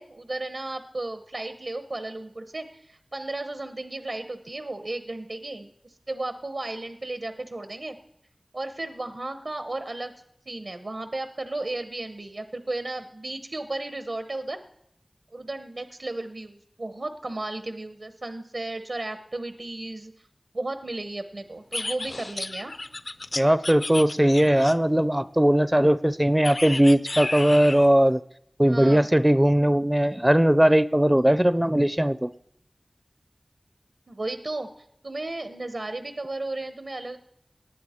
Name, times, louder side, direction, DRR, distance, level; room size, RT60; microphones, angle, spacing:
voice 1, 0.0-8.0 8.5-10.1 10.5-14.6 15.3-20.3 20.5-22.7 28.6-29.1 34.1-34.7 35.0-37.2, right 2 dB, 75° right, 9 dB, 0.9 m, -34 dB
sound 1, 21.7-25.0 26.4-27.9, left 2 dB, 65° left, 0.6 m, -33 dB
voice 2, 23.4-28.2 28.6-32.3, right 1 dB, 15° right, 16 dB, 0.4 m, -19 dB
19.0 x 10.5 x 4.4 m, 0.76 s
wide cardioid pair, 45°, 0 cm